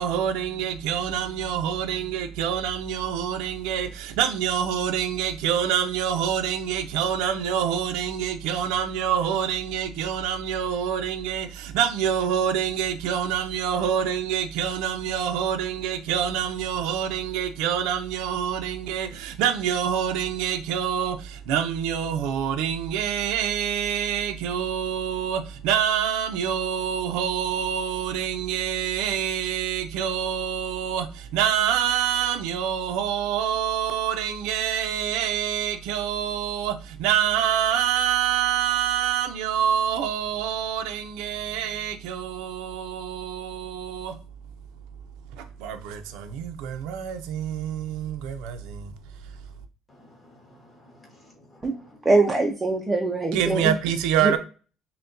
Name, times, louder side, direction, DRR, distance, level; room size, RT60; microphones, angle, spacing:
voice 1, 0.0-44.2 45.3-48.9 53.3-54.4, right 9 dB, 85° right, 0.5 m, -26 dB
voice 2, 49.9-52.0, left 1 dB, 15° left, 1.4 m, -54 dB
voice 3, 52.0-53.8 54.2-54.4, right 2 dB, 15° right, 0.5 m, -22 dB
5.7 x 2.2 x 2.5 m
cardioid pair, 140°, 0 cm